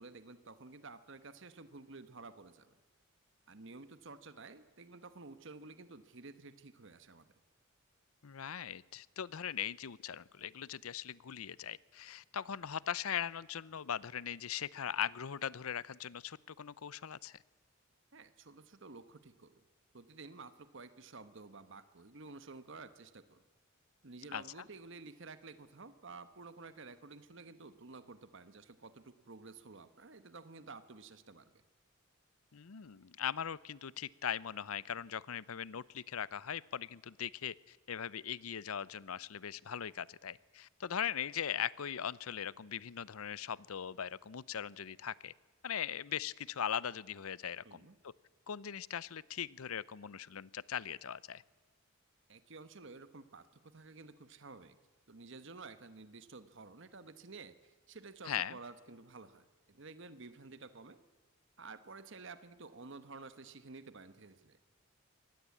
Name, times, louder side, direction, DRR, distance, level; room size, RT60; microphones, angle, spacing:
voice 1, 0.0-2.8 3.5-7.3 18.1-19.6 19.9-23.4 24.0-31.6 47.6-48.0 52.3-54.8 55.1-61.0 61.6-64.6, right 3 dB, 60° right, 12 dB, 1.2 m, -52 dB
voice 2, 8.2-17.4 24.3-24.4 32.5-45.3 45.6-48.1 48.5-51.4 58.2-58.6, left 8 dB, 90° left, 21 dB, 0.6 m, -40 dB
23.5 x 19.0 x 8.5 m, 1.4 s
head